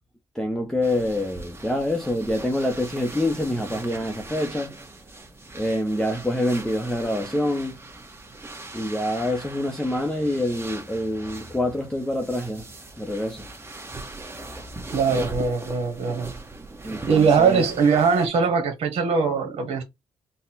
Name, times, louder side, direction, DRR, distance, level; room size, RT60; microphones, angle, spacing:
voice 1, 0.3-4.8 5.5-7.8 8.7-12.7 13.0-13.5 16.8-17.6, left 1 dB, 5° left, 0.7 m, -26 dB
sound 1, 0.8-18.3, right 2 dB, 20° right, 1.2 m, -40 dB
voice 2, 14.9-16.3 17.1-19.8, right 5 dB, 65° right, 1.1 m, -21 dB
4.0 x 2.1 x 4.0 m
cardioid pair, 90°, 11 cm